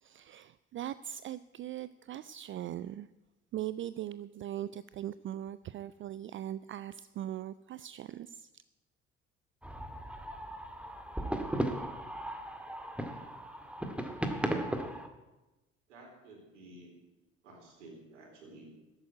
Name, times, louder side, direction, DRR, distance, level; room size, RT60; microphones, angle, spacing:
voice 1, 0.0-3.1 3.5-8.6, right 12 dB, 35° right, 0.4 m, -40 dB
sound 1, 9.6-15.1, right 1 dB, 5° right, 1.9 m, -36 dB
voice 2, 15.9-16.9 17.4-18.7, right 2 dB, 80° right, 4.0 m, -52 dB
13.5 x 8.9 x 9.5 m
figure-of-eight pair, 55°, 36 cm